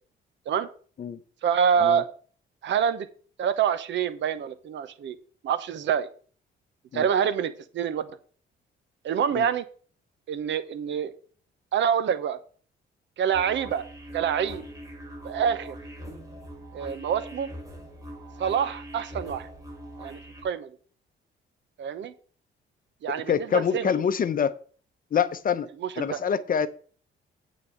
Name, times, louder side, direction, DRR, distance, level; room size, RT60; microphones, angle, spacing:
voice 1, 1.4-2.1 2.6-3.1 3.4-5.2 5.4-6.1 6.9-8.1 9.0-9.6 10.3-11.1 11.7-12.4 13.2-13.9 14.1-14.6 15.2-15.8 16.7-17.5 18.4-19.5 20.0-20.7 21.8-22.1 23.0-23.9 25.8-26.2, right 8 dB, 70° right, 0.9 m, -26 dB
sound 1, 13.3-20.4, equal, 15° right, 3.4 m, -42 dB
voice 2, 23.1-24.5 25.1-25.7 26.0-26.7, left 7 dB, 45° left, 0.7 m, -26 dB
8.8 x 4.1 x 6.5 m
cardioid pair, 90°, 20 cm